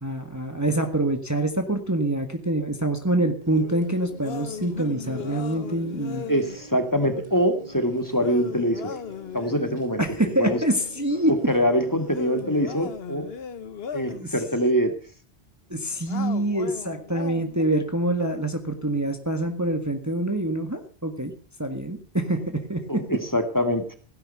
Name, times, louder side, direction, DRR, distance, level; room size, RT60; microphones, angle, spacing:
voice 1, 0.0-6.2 10.0-11.3 14.1-14.3 15.7-21.3 21.6-23.0, right 1 dB, 15° right, 6 dB, 1.7 m, -25 dB
sound 1, 3.4-12.7, right 1 dB, 45° right, 3.2 m, -44 dB
sound 2, 4.2-6.6 8.2-9.8 12.0-14.3 16.1-17.6, left 7 dB, 65° left, 1.2 m, -37 dB
voice 2, 6.3-8.9 9.3-10.0 10.4-10.6 11.5-13.3 13.9-14.9 22.9-23.9, equal, 15° left, 7 dB, 2.3 m, -24 dB
16.5 x 11.5 x 5.5 m, 0.43 s
omnidirectional pair, 1.1 m